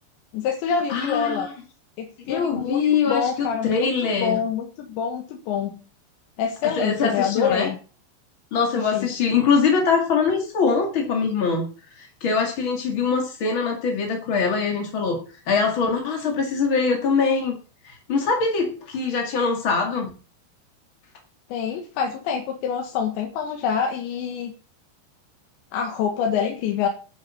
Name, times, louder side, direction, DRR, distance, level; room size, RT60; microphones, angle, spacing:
voice 1, 0.3-1.5 2.0-3.9 4.2-5.8 6.4-7.8 8.8-9.1 21.5-24.5 25.7-26.9, left 7 dB, 75° left, 2 dB, 3.8 m, -26 dB
voice 2, 0.9-1.5 2.3-4.4 6.6-7.7 8.5-11.7 12.0-15.2 15.5-17.6 17.8-20.1, left 5 dB, 45° left, 2 dB, 1.7 m, -23 dB
10.0 x 8.9 x 7.3 m, 0.37 s
omnidirectional pair, 5.3 m